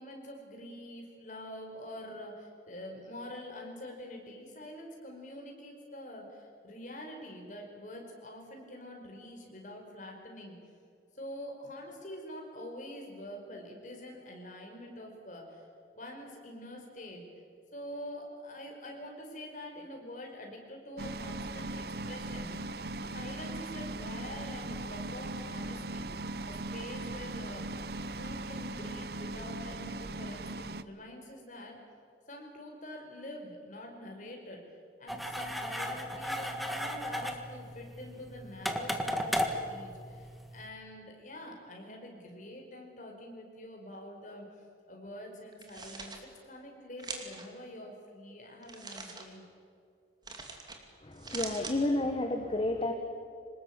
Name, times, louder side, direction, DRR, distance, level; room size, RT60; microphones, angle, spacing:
voice 1, 0.0-10.6 11.2-15.7 15.9-17.2 17.7-22.8 23.1-26.1 26.5-27.7 28.1-31.8 32.3-34.6 35.0-44.5 44.9-49.4, left 1 dB, 45° left, 1 dB, 5.2 m, -46 dB
sound 1, 21.0-30.8, right 2 dB, 60° right, 0.8 m, -39 dB
sound 2, 35.1-40.7, equal, ahead, 1.7 m, -35 dB
sound 3, 45.5-46.2 47.0-47.4 48.6-49.2 50.2-50.8 51.1-51.8, right 4 dB, 25° right, 2.7 m, -42 dB
voice 2, 51.0-52.9, left 2 dB, 30° left, 5 dB, 1.4 m, -31 dB
25.0 x 20.0 x 8.9 m, 2.4 s
head